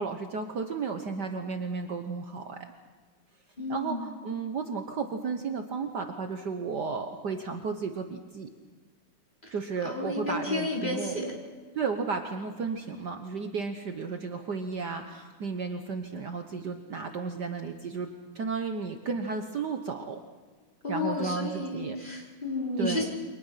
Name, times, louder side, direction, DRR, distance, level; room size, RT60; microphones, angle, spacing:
voice 1, 0.0-2.6 3.7-8.5 9.5-11.2 11.7-20.2 20.9-22.0 22.8-23.0, right 5 dB, 55° right, 5 dB, 1.7 m, -33 dB
voice 2, 3.6-4.0 9.4-9.6 9.8-11.3 20.8-23.0, left 2 dB, 20° left, -2 dB, 5.4 m, -32 dB
29.5 x 24.5 x 5.8 m, 1.5 s
omnidirectional pair, 2.4 m